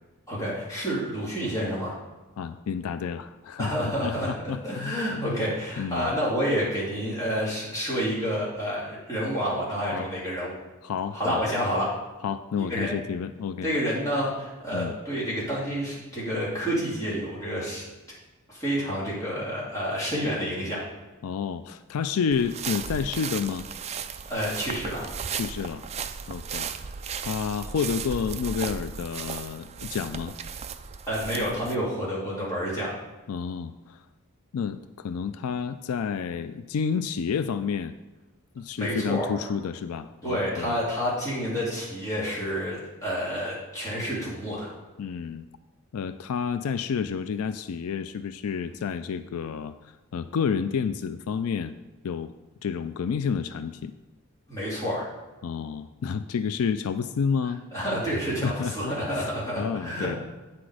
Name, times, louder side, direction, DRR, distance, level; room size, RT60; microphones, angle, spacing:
voice 1, 0.3-2.0 3.6-4.3 4.6-10.5 11.1-11.9 12.6-12.9 13.6-17.8 18.5-20.8 24.3-25.0 31.1-32.9 38.8-39.3 40.2-44.7 54.5-55.1 57.7-60.2, equal, 15° left, -7 dB, 2.8 m, -29 dB
voice 2, 2.4-5.5 5.8-6.2 9.9-10.1 10.8-11.4 12.2-13.7 14.7-14.9 21.2-23.7 25.3-25.8 26.3-26.9 27.2-30.3 33.3-34.0 34.5-37.9 38.6-40.8 45.0-45.4 45.9-49.7 50.1-51.7 52.0-52.3 52.6-53.9 55.4-57.6 58.4-60.2, left 6 dB, 80° left, 11 dB, 0.4 m, -30 dB
sound 1, 22.3-31.7, right 6 dB, 30° right, 0.3 m, -36 dB
8.7 x 6.0 x 4.8 m, 1.2 s
head